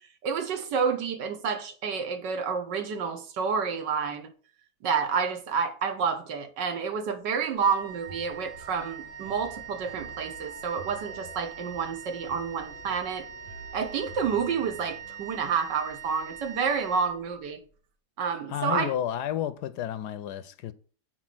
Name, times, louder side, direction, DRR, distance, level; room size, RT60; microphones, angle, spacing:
voice 1, 0.2-4.3 4.8-13.3 13.7-17.6 18.2-18.9, right 6 dB, 75° right, 1.6 m, -29 dB
Wind instrument woodwind instrument, 7.6-17.7, right 7 dB, 45° right, 2.1 m, -43 dB
sound 1, 8.1-15.3, right 3 dB, 90° right, 2.7 m, -49 dB
voice 2, 18.5-20.7, left 10 dB, 75° left, 1.0 m, -31 dB
7.3 x 4.6 x 6.0 m
omnidirectional pair, 2.0 m